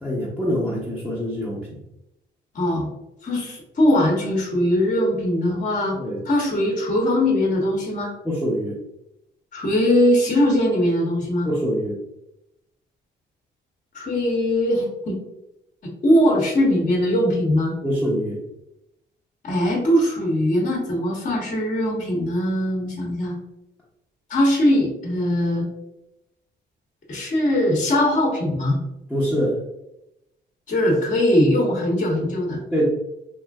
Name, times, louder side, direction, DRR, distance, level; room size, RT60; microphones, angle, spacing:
voice 1, 0.0-1.7 6.0-6.2 8.2-8.8 11.4-12.0 17.8-18.4 29.1-29.6 32.7-32.9, equal, 5° left, -8 dB, 0.7 m, -24 dB
voice 2, 2.5-2.9 3.2-6.0 6.2-8.1 9.5-11.5 13.9-15.2 16.0-17.8 19.4-23.3 24.3-25.7 27.1-28.8 30.7-32.6, left 1 dB, 40° left, -1 dB, 1.0 m, -21 dB
3.0 x 2.4 x 2.3 m, 0.87 s
cardioid pair, 90°, 20 cm